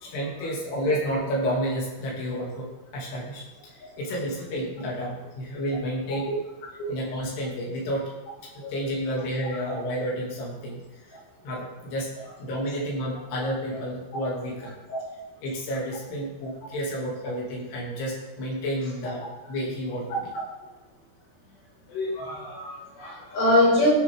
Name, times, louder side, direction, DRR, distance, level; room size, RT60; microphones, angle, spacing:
voice 1, 0.0-2.7 2.9-6.3 6.9-8.1 8.7-10.8 11.1-11.2 11.4-12.1 12.4-14.7 15.4-20.3, equal, 85° left, -3 dB, 4.4 m, -30 dB
voice 2, 21.9-23.9, left 1 dB, 70° left, -6 dB, 6.4 m, -24 dB
18.0 x 6.8 x 3.5 m, 1.0 s
omnidirectional pair, 4.6 m